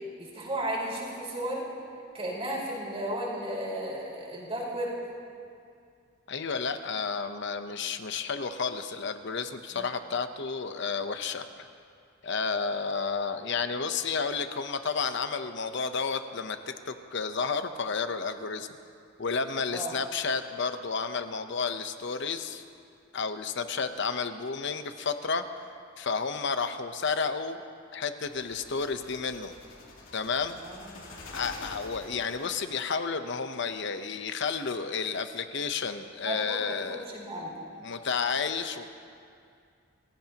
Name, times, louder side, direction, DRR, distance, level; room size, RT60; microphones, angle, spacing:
voice 1, 0.2-1.7 2.1-5.0 9.7-9.9 19.7-20.0 30.6-31.1 36.2-37.5, right 1 dB, 30° right, -4 dB, 4.7 m, -34 dB
voice 2, 6.3-11.7 12.2-18.7 19.2-22.6 23.1-25.4 26.0-27.6 27.9-29.5 30.1-30.6 31.3-37.0 37.8-38.9, left 5 dB, 65° left, 9 dB, 0.9 m, -31 dB
sound 1, 28.2-32.8, left 2 dB, 85° left, 2.8 m, -47 dB
29.5 x 16.5 x 3.0 m, 2.4 s
head